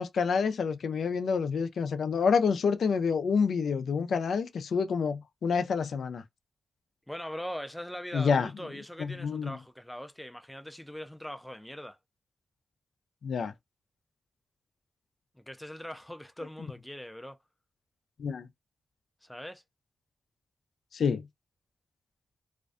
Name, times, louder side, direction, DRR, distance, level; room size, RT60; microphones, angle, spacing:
voice 1, 0.0-6.2 8.1-8.5 9.0-9.6 13.2-13.5 18.2-18.5 20.9-21.2, left 5 dB, 85° left, 0.3 m, -28 dB
voice 2, 7.1-12.0 15.4-17.4 19.2-19.6, equal, 5° left, 0.3 m, -41 dB
2.4 x 2.1 x 2.4 m
wide cardioid pair, 145°, 0 cm